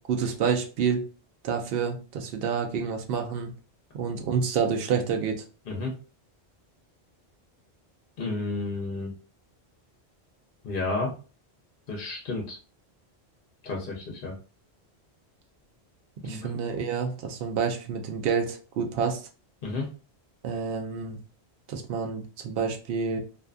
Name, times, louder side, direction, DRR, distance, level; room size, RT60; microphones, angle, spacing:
voice 1, 0.1-1.0 1.4-3.5 3.9-5.4 16.2-19.3 20.4-21.2 21.7-23.2, right 6 dB, 65° right, 4 dB, 0.8 m, -28 dB
voice 2, 8.2-9.1 10.6-11.1 11.9-12.6 13.6-14.3 16.2-16.6 19.6-19.9, left 3 dB, 60° left, 0 dB, 0.8 m, -31 dB
2.5 x 2.3 x 2.3 m, 0.35 s
omnidirectional pair, 1.1 m